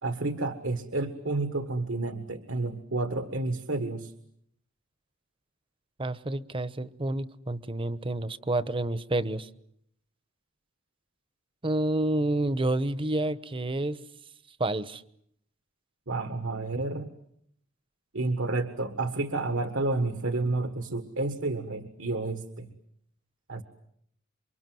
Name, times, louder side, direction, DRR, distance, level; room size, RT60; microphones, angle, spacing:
voice 1, 0.0-4.1 16.1-17.1 18.1-22.7 23.5-23.6, right 2 dB, 75° right, 9 dB, 1.6 m, -30 dB
voice 2, 6.0-9.5 11.6-14.0 14.6-15.0, right 1 dB, 25° right, 15 dB, 1.0 m, -29 dB
28.5 x 24.5 x 7.8 m, 0.71 s
head